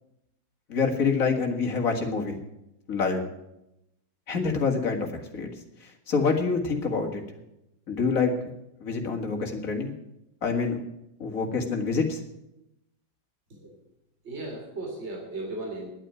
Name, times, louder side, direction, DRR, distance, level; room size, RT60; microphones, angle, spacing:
voice 1, 0.7-2.4 2.9-3.3 4.3-5.1 5.3-5.5 5.8-7.2 7.9-8.3 8.8-9.9 10.4-10.8 11.2-12.2, left 4 dB, 45° left, 2 dB, 2.3 m, -26 dB
voice 2, 14.2-15.9, right 2 dB, 35° right, 0 dB, 3.4 m, -36 dB
10.5 x 8.9 x 9.7 m, 0.85 s
omnidirectional pair, 2.1 m